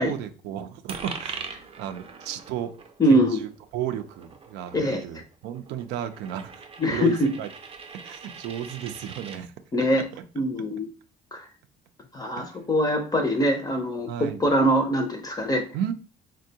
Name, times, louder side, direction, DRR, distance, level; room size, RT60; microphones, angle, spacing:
voice 1, 0.0-1.4 1.8-2.7 3.1-6.7 6.9-7.5 8.0-9.5 12.4-12.6 14.1-14.4 15.7-15.9, right 10 dB, 90° right, 0.4 m, -33 dB
Coin (dropping), 0.9-9.4, right 5 dB, 35° right, 0.5 m, -42 dB
voice 2, 3.0-3.4 4.7-5.0 6.8-7.3 9.7-10.0 10.4-10.9 11.3-11.5 12.1-15.6, equal, 20° left, 0.5 m, -23 dB
3.5 x 2.2 x 2.7 m
cardioid pair, 110°, 17 cm